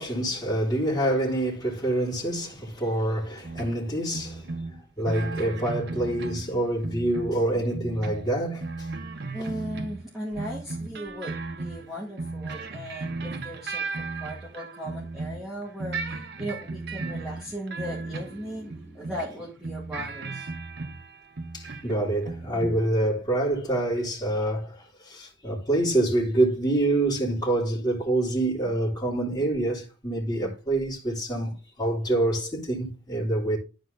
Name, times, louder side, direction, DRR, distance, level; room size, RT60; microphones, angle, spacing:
voice 1, 0.0-4.5 5.0-8.9 21.5-31.5 31.8-33.6, right 1 dB, 20° left, 3.2 m, -26 dB
sound 1, 3.4-3.8 4.1-6.6 6.8-10.1 10.4-15.5 15.8-19.3 19.6-22.0 22.2-22.9, right 3 dB, 55° right, 0.9 m, -35 dB
voice 2, 9.3-16.0 16.4-20.5, equal, ahead, 2.2 m, -37 dB
12.0 x 4.6 x 4.0 m
head